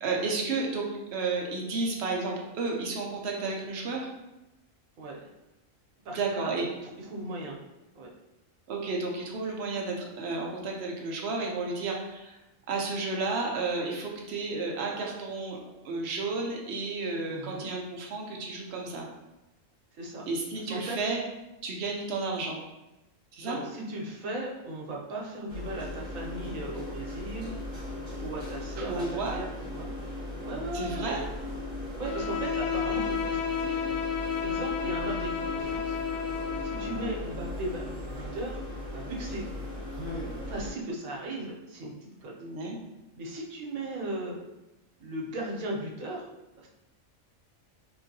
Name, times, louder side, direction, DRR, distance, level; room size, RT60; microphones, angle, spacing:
voice 1, 0.0-4.1 6.1-6.7 8.7-12.4 12.7-15.6 15.8-19.1 20.3-21.2 21.6-22.6 23.3-23.6 28.8-29.4 30.7-31.2 42.4-42.8, right 3 dB, 60° right, 0 dB, 0.8 m, -32 dB
voice 2, 6.0-7.6 7.9-8.1 14.9-15.0 17.3-17.7 20.0-20.3 20.7-21.0 23.4-27.5 28.2-29.9 30.4-31.0 31.9-33.8 34.4-36.0 36.6-39.5 40.5-42.4 43.2-44.4 45.0-46.3 46.6-46.7, right 1 dB, 85° right, -2 dB, 1.2 m, -37 dB
sound 1, 25.5-40.7, left 1 dB, 5° left, 1.2 m, -38 dB
Bowed string instrument, 32.0-37.2, left 7 dB, 70° left, 1.1 m, -31 dB
3.8 x 2.6 x 2.6 m, 0.98 s
omnidirectional pair, 1.4 m